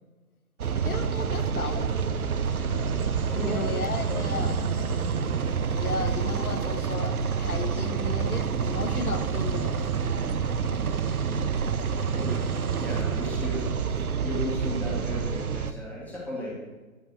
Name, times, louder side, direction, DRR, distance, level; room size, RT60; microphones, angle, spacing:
sound 1, 0.6-15.7, right 6 dB, 85° right, 0.7 m, -28 dB
voice 1, 0.8-1.9 3.4-4.6 5.7-9.8, left 4 dB, 85° left, 8 dB, 1.0 m, -34 dB
voice 2, 2.6-3.8 4.1-4.5 12.0-16.5, left 1 dB, 5° left, -6 dB, 1.6 m, -36 dB
9.6 x 3.3 x 5.8 m, 1.2 s
figure-of-eight pair, 135°, 43 cm